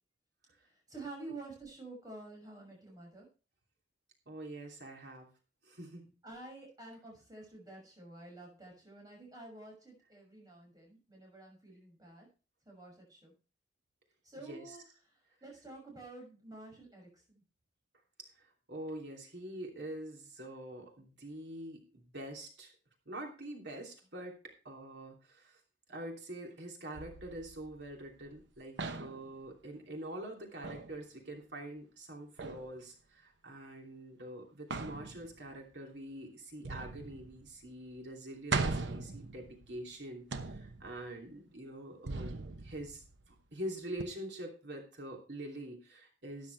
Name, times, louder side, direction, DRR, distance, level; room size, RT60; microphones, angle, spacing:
voice 1, 0.6-3.3 6.2-12.3 12.6-13.3 14.2-17.4, right 2 dB, 20° right, 0 dB, 6.4 m, -50 dB
voice 2, 4.3-5.3 5.6-6.2 14.4-14.8 18.7-22.7 23.1-25.6 25.9-46.5, right 1 dB, 70° right, 1 dB, 2.9 m, -45 dB
sound 1, 26.9-28.4 28.8-29.3 30.6-31.0 32.4-32.7 34.7-35.6 36.6-37.7 38.0-38.1 38.5-39.9 40.3-41.1 42.1-43.4 44.0-44.1, right 3 dB, 85° right, 0.9 m, -39 dB
13.0 x 9.6 x 3.3 m, 0.34 s
head